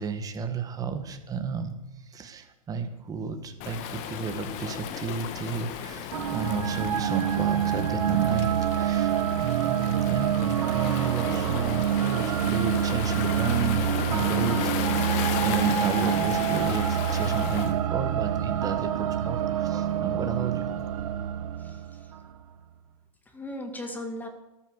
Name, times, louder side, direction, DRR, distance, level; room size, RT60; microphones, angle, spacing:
voice 1, 0.0-20.7, right 5 dB, 20° right, 7 dB, 1.8 m, -33 dB
Waves surf, 3.6-17.8, left 9 dB, 40° left, 1.4 m, -35 dB
sound 1, 6.1-22.3, right 10 dB, 70° right, 1.6 m, -27 dB
voice 2, 21.6-22.1 23.3-24.3, left 1 dB, 10° left, 6 dB, 2.1 m, -38 dB
13.5 x 11.5 x 7.3 m, 0.95 s
hypercardioid pair, 130°, 19 cm